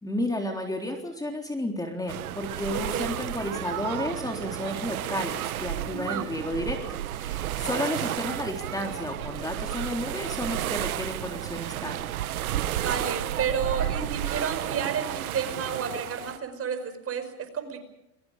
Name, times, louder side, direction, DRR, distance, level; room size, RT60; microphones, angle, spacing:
voice 1, 0.0-12.1, left 1 dB, 10° left, 3 dB, 3.8 m, -32 dB
sound 1, 2.1-16.4, right 12 dB, 85° right, 1.4 m, -32 dB
voice 2, 2.7-3.2 5.9-6.3 12.7-17.8, right 6 dB, 35° right, 9 dB, 5.3 m, -31 dB
29.5 x 22.5 x 5.1 m, 0.90 s
hypercardioid pair, 100°, 42 cm